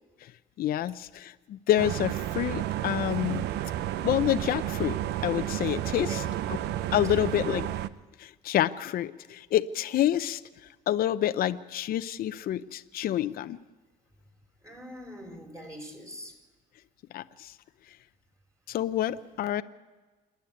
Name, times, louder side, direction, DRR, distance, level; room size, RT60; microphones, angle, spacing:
voice 1, 0.6-3.4 4.0-5.0 5.2-6.2 6.9-7.7 8.2-10.4 10.9-13.6 17.1-17.5 18.7-19.6, left 12 dB, 60° left, 11 dB, 0.7 m, -28 dB
sound 1, 1.8-7.9, right 12 dB, 80° right, 0.7 m, -31 dB
voice 2, 5.9-6.3 7.1-7.6 14.6-16.3, equal, 20° right, 3 dB, 4.7 m, -43 dB
27.0 x 10.5 x 9.3 m, 1.3 s
cardioid pair, 110°, 17 cm